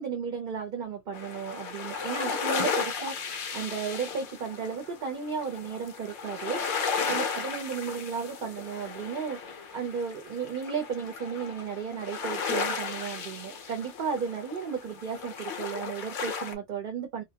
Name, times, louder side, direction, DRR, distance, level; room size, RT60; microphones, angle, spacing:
voice 1, 0.0-17.2, right 6 dB, 55° right, 0.7 m, -34 dB
sound 1, 1.1-16.5, left 5 dB, 60° left, 0.7 m, -35 dB
2.1 x 2.0 x 2.7 m
omnidirectional pair, 1.1 m